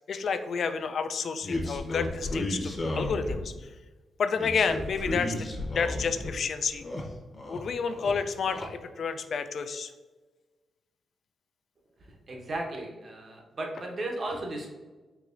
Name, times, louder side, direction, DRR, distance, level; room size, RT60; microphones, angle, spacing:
voice 1, 0.1-3.7 4.2-5.5 5.7-6.8 7.5-9.9, left 5 dB, 65° left, 9 dB, 0.3 m, -30 dB
sound 1, 1.4-3.6 4.4-6.3 6.7-7.6 7.9-8.7, left 1 dB, 40° left, 0.8 m, -33 dB
voice 2, 12.3-14.7, right 2 dB, 50° right, 0 dB, 0.9 m, -35 dB
4.6 x 2.9 x 2.5 m, 1.2 s
cardioid pair, 60°, 0 cm